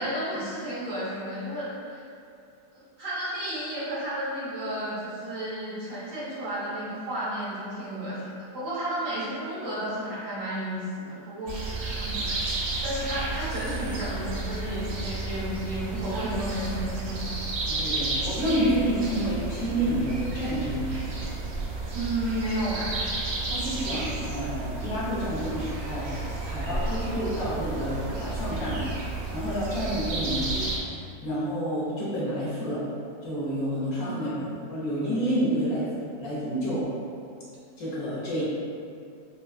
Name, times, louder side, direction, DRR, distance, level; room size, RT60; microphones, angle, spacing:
voice 1, 0.0-2.0 3.0-12.3 12.8-17.3 21.9-23.0 33.9-34.3, right 1 dB, 70° right, -9 dB, 1.7 m, -32 dB
sound 1, 11.5-30.8, right 3 dB, 90° right, 1.3 m, -32 dB
voice 2, 17.7-20.9 23.5-26.1 26.4-28.9 29.3-30.7 31.2-32.8 33.2-34.3 34.7-35.9 36.2-36.8 37.8-38.4, equal, 65° left, -9 dB, 1.2 m, -29 dB
4.3 x 2.3 x 2.3 m, 2.4 s
omnidirectional pair, 1.8 m